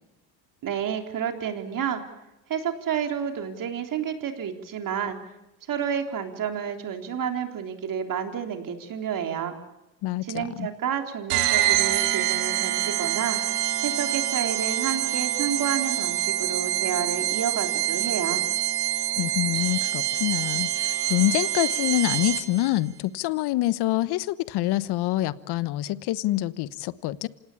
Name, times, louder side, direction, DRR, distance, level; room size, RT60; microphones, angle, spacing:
voice 1, 0.6-2.0 2.5-5.2 5.7-9.5 10.2-13.4 13.8-18.4, right 8 dB, 40° right, 5 dB, 3.7 m, -30 dB
voice 2, 10.0-10.7 19.2-27.3, left 16 dB, 55° left, 17 dB, 1.2 m, -26 dB
sound 1, 11.3-22.7, right 14 dB, 75° right, 2.9 m, -26 dB
27.0 x 18.5 x 8.6 m, 0.98 s
hypercardioid pair, 90°, 48 cm